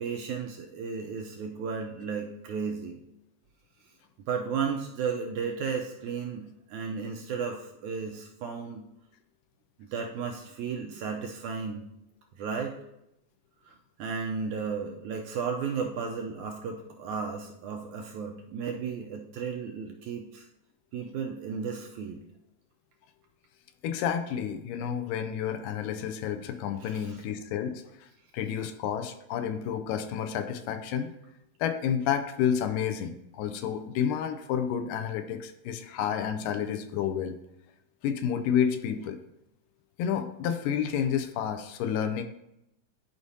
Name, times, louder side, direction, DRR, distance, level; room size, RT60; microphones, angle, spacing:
voice 1, 0.0-3.0 4.3-8.9 9.9-11.8 12.4-12.8 13.7-13.8 14.0-20.5 20.9-22.3 26.8-27.2, right 6 dB, 80° right, 2 dB, 1.8 m, -34 dB
voice 2, 23.8-28.1 28.3-31.1 31.6-37.4 38.0-39.2 40.0-42.2, left 8 dB, 80° left, 8 dB, 2.2 m, -30 dB
11.5 x 4.8 x 2.7 m, 0.81 s
omnidirectional pair, 4.0 m